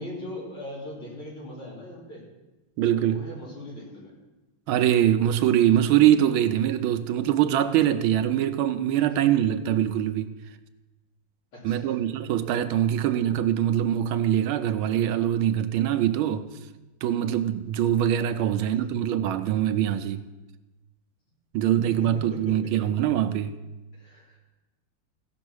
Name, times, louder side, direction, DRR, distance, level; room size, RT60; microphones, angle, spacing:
voice 1, 0.0-2.2 2.9-4.1 11.5-12.3 18.4-18.7 22.0-22.9 24.0-24.4, left 1 dB, 80° left, 4.3 m, -40 dB
voice 2, 2.8-3.2 4.7-10.3 11.6-16.5 17.0-20.2 21.5-23.5, right 11 dB, 80° right, 1.4 m, -23 dB
15.5 x 6.1 x 6.2 m
omnidirectional pair, 2.3 m